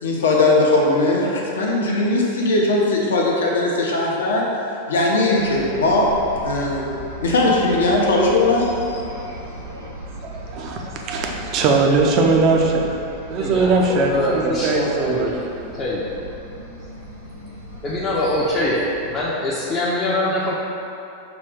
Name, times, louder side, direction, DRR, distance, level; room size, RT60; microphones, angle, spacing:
voice 1, 0.0-4.5 4.9-6.1 6.4-9.0, left 2 dB, 65° left, -2 dB, 0.7 m, -19 dB
sound 1, 5.3-19.3, equal, 85° right, 0.7 m, -37 dB
voice 2, 10.2-12.8 13.3-15.4, right 3 dB, 40° right, 0 dB, 0.5 m, -20 dB
voice 3, 13.4-15.3 15.7-16.1 17.8-20.5, left 1 dB, 25° left, -8 dB, 0.6 m, -23 dB
5.8 x 2.4 x 3.5 m, 2.8 s
figure-of-eight pair, 90°, 0 cm